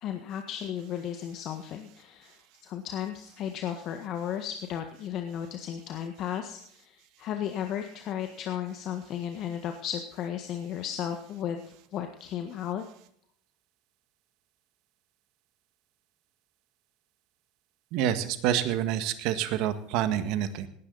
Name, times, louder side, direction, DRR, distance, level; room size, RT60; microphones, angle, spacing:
voice 1, 0.0-2.4 2.6-11.6 11.9-12.8, left 9 dB, 55° left, 6 dB, 1.5 m, -34 dB
voice 2, 17.9-20.7, right 10 dB, 65° right, 10 dB, 1.8 m, -27 dB
18.5 x 10.5 x 4.1 m, 0.66 s
supercardioid pair, 100°, 0 cm